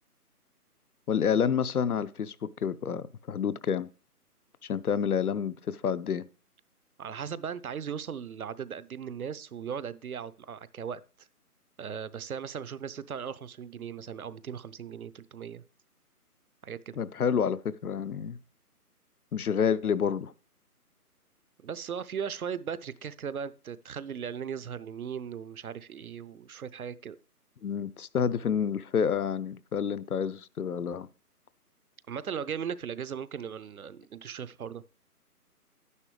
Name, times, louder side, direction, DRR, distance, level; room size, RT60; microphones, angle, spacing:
voice 1, 1.1-3.9 4.7-6.2 17.0-18.4 19.3-20.3 27.6-31.1, left 7 dB, 70° left, 0.7 m, -29 dB
voice 2, 7.0-11.0 11.8-15.6 16.6-17.0 21.6-27.2 32.1-34.8, right 7 dB, 65° right, 0.7 m, -38 dB
11.0 x 9.7 x 3.3 m
figure-of-eight pair, 160°, 46 cm